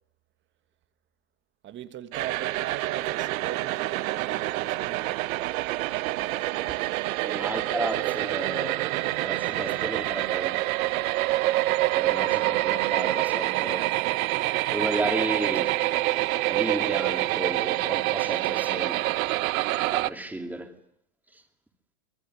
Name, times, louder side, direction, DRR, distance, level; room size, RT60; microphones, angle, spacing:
voice 1, 1.6-5.3 6.7-6.8, right 11 dB, 25° right, 1.5 m, -39 dB
sound 1, 2.1-20.1, right 17 dB, 65° right, 1.0 m, -27 dB
voice 2, 7.2-10.5 12.0-13.9 14.7-15.8 16.3-19.0 19.9-20.7, right 1 dB, 5° right, 2.8 m, -33 dB
25.5 x 22.0 x 9.5 m
supercardioid pair, 155°, 44 cm